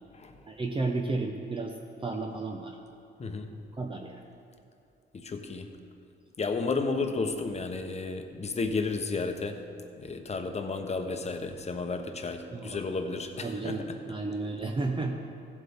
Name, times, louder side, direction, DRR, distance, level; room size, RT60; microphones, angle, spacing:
voice 1, 0.5-1.7 2.0-2.8 3.7-4.3 12.5-12.8 13.4-15.1, right 3 dB, 25° right, 2 dB, 0.8 m, -32 dB
voice 2, 3.2-3.5 5.1-5.7 6.4-9.6 10.0-14.0, left 3 dB, 35° left, 6 dB, 1.0 m, -32 dB
16.0 x 7.7 x 3.6 m, 2.6 s
cardioid pair, 90°, 20 cm